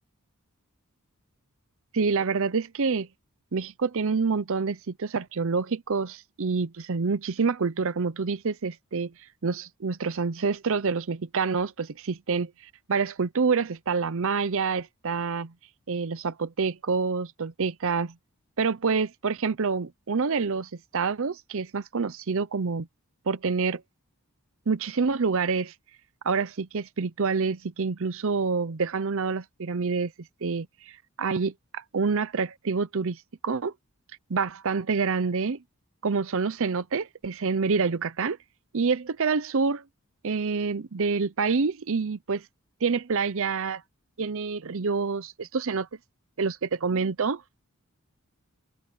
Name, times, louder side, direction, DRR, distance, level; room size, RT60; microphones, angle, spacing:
voice 1, 1.9-3.1 3.5-9.1 9.4-12.5 12.9-15.5 15.9-18.1 18.6-22.9 23.3-23.8 24.7-25.7 26.2-30.1 30.4-33.7 34.3-35.6 36.0-38.4 38.7-39.8 40.2-42.4 42.8-43.8 44.2-45.9 46.4-47.4, right 5 dB, 60° right, 0.6 m, -27 dB
open air
head